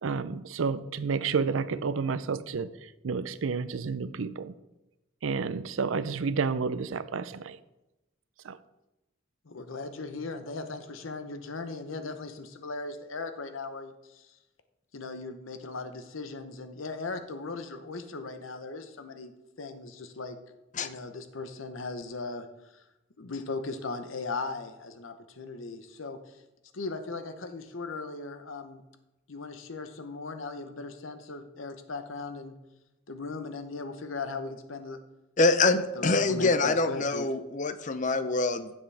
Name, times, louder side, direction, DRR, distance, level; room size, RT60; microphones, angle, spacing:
voice 1, 0.0-2.7 3.0-4.5 5.2-7.6 8.4-8.6, right 5 dB, 85° right, 0.5 m, -30 dB
voice 2, 9.4-14.3 14.9-19.3 19.6-20.4 20.8-22.5 22.7-22.8 23.2-26.2 26.7-28.8 29.3-32.5 33.1-35.0 35.9-37.3, left 3 dB, 90° left, 0.9 m, -38 dB
voice 3, 35.4-38.7, left 3 dB, 40° left, 0.6 m, -25 dB
15.5 x 7.3 x 3.4 m
head